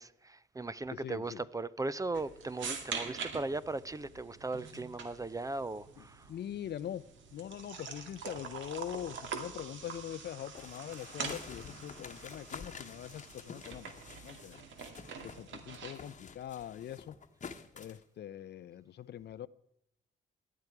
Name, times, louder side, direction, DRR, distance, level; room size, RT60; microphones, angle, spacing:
voice 1, 0.0-6.3, right 3 dB, 15° right, 0.5 m, -38 dB
voice 2, 0.9-1.4 6.0-7.0 7.3-13.9 14.2-14.6 15.2-17.2 17.7-19.5, left 10 dB, 60° left, 0.6 m, -43 dB
sound 1, 2.1-16.1, right 5 dB, 70° right, 2.2 m, -45 dB
sound 2, 10.5-15.5 15.7-18.0, left 5 dB, 40° left, 1.2 m, -49 dB
18.0 x 11.5 x 4.7 m
cardioid pair, 90°, 20 cm